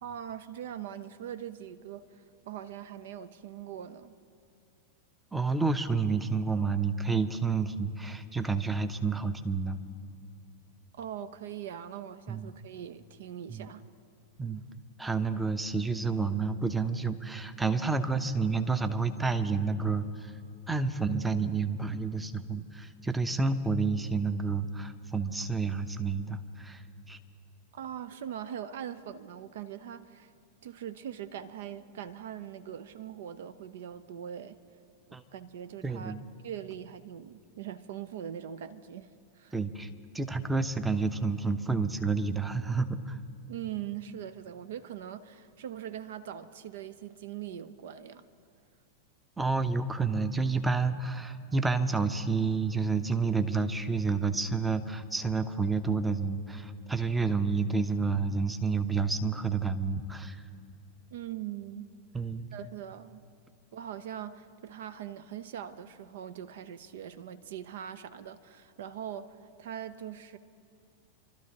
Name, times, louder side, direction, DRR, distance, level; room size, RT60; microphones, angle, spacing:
voice 1, 0.0-4.2 10.9-13.8 27.7-30.3 30.6-34.6 35.1-36.1 36.4-39.6 43.5-48.3 61.1-61.9 62.5-63.2 63.7-70.4, right 10 dB, 55° right, 0.5 m, -41 dB
voice 2, 5.3-9.8 12.3-12.5 13.5-13.7 14.4-14.6 15.0-20.3 20.7-27.2 35.1-35.2 35.8-36.2 39.5-39.9 40.1-43.2 49.4-60.4 62.1-62.5, right 4 dB, 10° right, 0.7 m, -29 dB
28.0 x 12.5 x 2.9 m
figure-of-eight pair, 90°, 0 cm